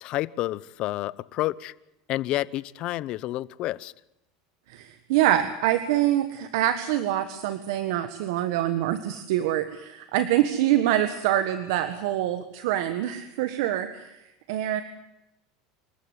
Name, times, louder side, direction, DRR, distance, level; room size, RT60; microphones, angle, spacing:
voice 1, 0.0-1.7 2.1-3.9, left 16 dB, 50° left, 19 dB, 0.9 m, -29 dB
voice 2, 4.7-14.2 14.5-14.8, right 12 dB, 75° right, 10 dB, 1.6 m, -25 dB
26.0 x 14.5 x 9.6 m, 0.89 s
supercardioid pair, 120°, 2 cm